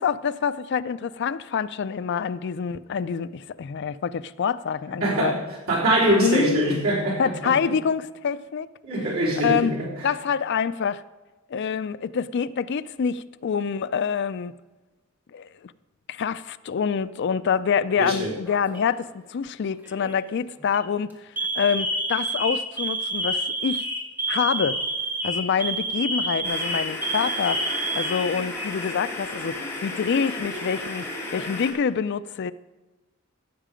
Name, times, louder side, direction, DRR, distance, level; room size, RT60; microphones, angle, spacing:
voice 1, 0.0-5.3 6.2-6.8 7.2-8.7 9.4-9.7 10.0-11.0 11.5-14.5 15.3-15.7 16.1-21.1 21.6-23.9 24.3-24.8 25.2-27.6 27.9-32.5, left 6 dB, 55° left, 0.4 m, -26 dB
voice 2, 5.0-5.4 5.7-7.6 8.8-9.9 18.0-18.3, right 1 dB, 80° right, 3.8 m, -23 dB
Alarm, 18.5-19.0 19.8-20.1 20.6-20.8 21.4-28.9 29.2-29.3 30.2-30.9, right 2 dB, 10° right, 1.5 m, -29 dB
sound 1, 26.4-31.7, left 2 dB, 10° left, 2.2 m, -34 dB
15.0 x 7.5 x 5.1 m
head